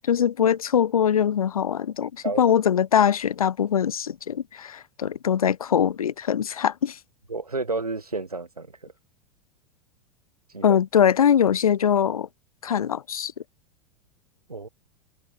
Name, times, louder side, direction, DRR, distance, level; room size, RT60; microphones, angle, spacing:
voice 1, 0.0-7.0 10.6-12.3 12.6-13.3, left 8 dB, 70° left, 0.6 m, -22 dB
voice 2, 7.3-8.7 10.5-10.8 14.5-14.7, right 3 dB, 85° right, 1.5 m, -30 dB
figure-of-eight pair, 90°, 19 cm